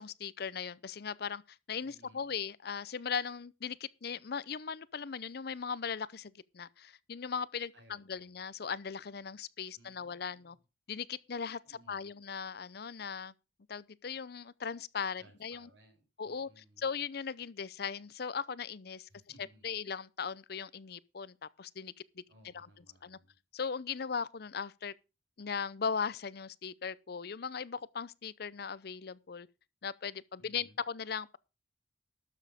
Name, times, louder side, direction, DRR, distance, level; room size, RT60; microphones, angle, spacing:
voice 1, 0.0-10.6 10.9-11.6 11.9-13.3 13.7-15.7 16.2-19.1 19.6-21.9 22.4-22.7 23.0-23.2 23.5-24.9 25.4-29.5 29.8-31.4, left 6 dB, 60° left, 0.6 m, -38 dB
voice 2, 1.8-2.3 7.7-8.3 9.7-10.6 11.6-12.1 15.2-16.8 19.1-19.7 22.3-23.4 30.4-30.8, right 1 dB, 85° right, 4.9 m, -62 dB
12.5 x 7.2 x 5.0 m
head